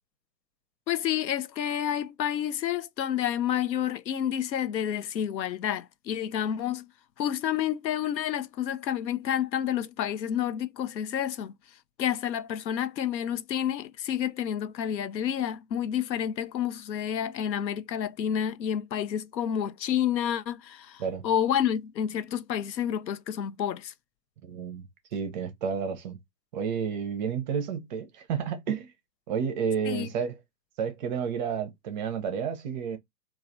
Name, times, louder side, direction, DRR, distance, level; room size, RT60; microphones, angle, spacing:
voice 1, 0.9-6.8 7.2-11.5 12.0-23.9 29.9-30.1, left 10 dB, 90° left, 0.6 m, -29 dB
voice 2, 24.4-24.8 25.1-26.2 26.5-28.9 29.3-30.4 30.8-33.0, right 7 dB, 30° right, 0.5 m, -31 dB
3.1 x 2.4 x 2.4 m
hypercardioid pair, 115°, 50 cm